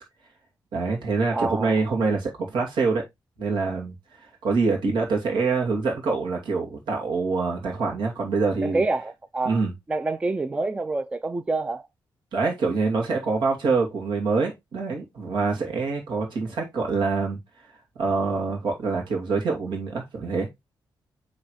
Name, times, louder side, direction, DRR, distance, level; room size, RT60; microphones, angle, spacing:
voice 1, 0.7-3.1 3.4-3.9 4.4-8.8 9.4-9.7 12.3-17.4 18.0-20.5, right 4 dB, 85° right, 2.4 m, -25 dB
voice 2, 1.3-1.8 8.6-9.6 9.9-11.9, right 3 dB, 15° right, 0.3 m, -27 dB
8.1 x 3.9 x 3.1 m
wide cardioid pair, 145°, 8 cm